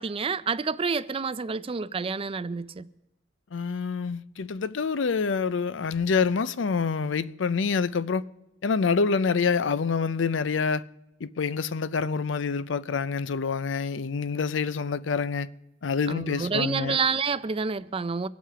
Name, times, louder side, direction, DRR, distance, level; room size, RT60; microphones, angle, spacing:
voice 1, 0.0-2.9 16.1-18.3, right 5 dB, 30° right, 0.4 m, -28 dB
voice 2, 3.5-8.2 8.6-10.8 11.2-15.5 15.8-17.0, left 5 dB, 70° left, 0.5 m, -26 dB
24.5 x 8.5 x 4.9 m
head